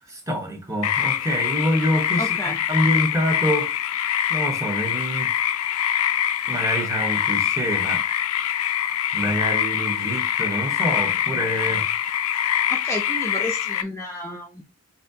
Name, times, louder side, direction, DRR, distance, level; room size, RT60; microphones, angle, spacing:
voice 1, 0.1-3.7 4.3-5.3 6.5-8.4 9.1-11.9, equal, 15° right, 1.1 m, -26 dB
sound 1, 0.8-13.8, left 10 dB, 80° left, 0.5 m, -24 dB
voice 2, 2.2-2.6 12.7-14.6, left 1 dB, 10° left, 0.5 m, -31 dB
4.7 x 4.1 x 2.7 m
head